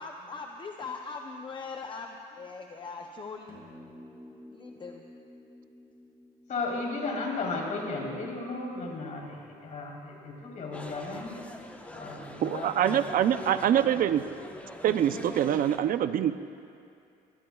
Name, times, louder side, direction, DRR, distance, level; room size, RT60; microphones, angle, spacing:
voice 1, 0.0-3.7 4.5-5.0, left 4 dB, 30° left, 3 dB, 0.7 m, -41 dB
sound 1, 3.5-8.0, left 1 dB, 20° right, 4.2 m, -52 dB
voice 2, 6.5-11.4 11.9-13.0, left 3 dB, 50° left, -2 dB, 3.9 m, -35 dB
sound 2, 10.7-15.8, left 1 dB, 10° left, 1.1 m, -43 dB
voice 3, 12.4-14.2 14.8-16.3, right 10 dB, 55° right, 11 dB, 0.6 m, -25 dB
21.0 x 20.0 x 2.4 m, 2.6 s
cardioid pair, 110°, 17 cm